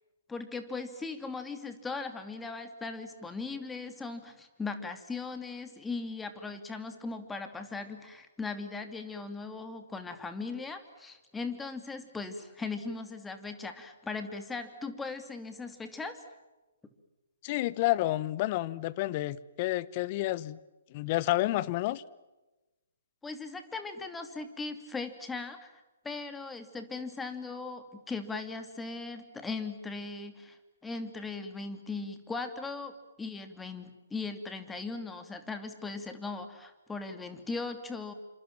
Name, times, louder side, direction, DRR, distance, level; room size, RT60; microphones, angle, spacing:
voice 1, 0.3-16.2 23.2-25.7 26.0-38.1, left 4 dB, 10° left, 2.7 m, -38 dB
voice 2, 17.4-20.6 20.9-22.0, left 17 dB, 35° left, 1.1 m, -30 dB
28.5 x 26.5 x 7.5 m
figure-of-eight pair, 130°, 0 cm